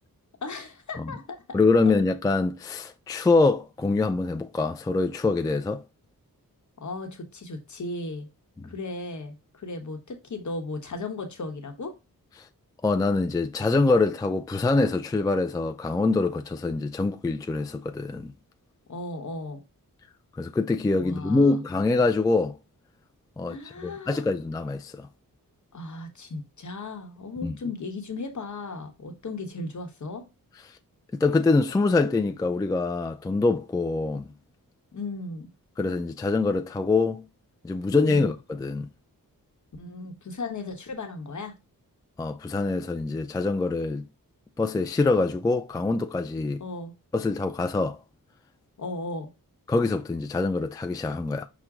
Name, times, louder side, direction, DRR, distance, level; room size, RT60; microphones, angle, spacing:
voice 1, 0.4-1.4 6.8-8.3 8.7-11.9 18.9-19.6 21.0-21.6 23.5-24.3 25.7-30.3 34.9-35.5 38.0-38.3 39.8-41.5 46.6-46.9 48.8-49.3, left 3 dB, 55° left, 1.0 m, -36 dB
voice 2, 1.5-5.8 8.6-8.7 12.8-18.3 20.4-22.6 23.4-25.1 27.4-27.5 31.1-34.3 35.8-37.2 37.6-38.9 42.2-44.1 44.6-46.6 47.1-48.0 49.7-51.5, left 3 dB, 10° left, 0.3 m, -24 dB
6.0 x 2.2 x 3.5 m
cardioid pair, 65°, 35 cm